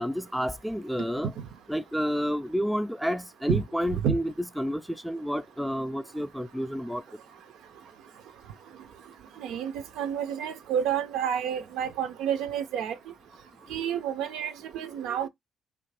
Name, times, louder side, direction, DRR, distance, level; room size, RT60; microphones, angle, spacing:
voice 1, 0.0-1.3 1.7-7.0, equal, ahead, 0.3 m, -30 dB
voice 2, 9.4-13.0 13.7-15.3, right 9 dB, 90° right, 0.4 m, -29 dB
3.2 x 2.4 x 3.2 m
cardioid pair, 90°, 0 cm